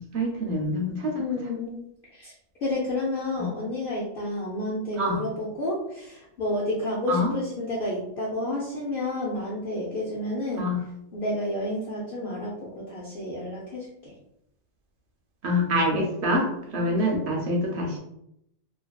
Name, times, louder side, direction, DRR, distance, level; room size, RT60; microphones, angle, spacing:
voice 1, 0.0-1.2 3.4-3.5 5.0-5.2 7.1-7.3 10.6-10.8 15.4-18.0, equal, 65° right, 0 dB, 0.8 m, -26 dB
voice 2, 1.1-1.8 2.1-2.3 2.6-10.7 11.1-14.1 16.2-16.4 16.7-17.1, left 1 dB, 55° left, -5 dB, 0.7 m, -30 dB
2.5 x 2.5 x 2.3 m, 0.77 s
omnidirectional pair, 1.3 m